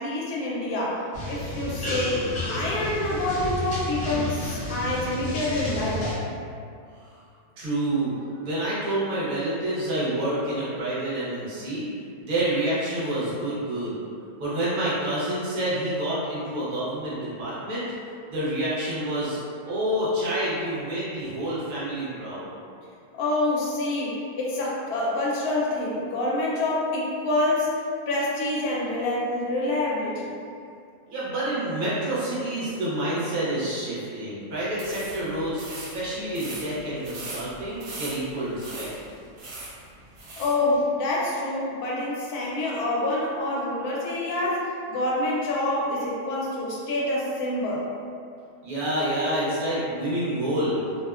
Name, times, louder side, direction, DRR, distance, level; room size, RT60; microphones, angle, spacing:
voice 1, 0.0-2.2 2.4-6.2 23.1-27.7 28.1-30.3 40.4-47.8, left 2 dB, 80° left, -5 dB, 1.1 m, -27 dB
sound 1, 1.1-6.1, left 1 dB, 50° left, 0.9 m, -31 dB
voice 2, 7.6-11.9 12.2-14.0 14.4-17.8 18.3-19.4 19.6-22.5 31.1-38.9 48.6-50.8, right 1 dB, 45° right, -9 dB, 0.7 m, -28 dB
sound 2, 34.7-40.6, right 2 dB, 70° right, 1.0 m, -40 dB
2.6 x 2.1 x 2.3 m, 2.4 s
omnidirectional pair, 1.6 m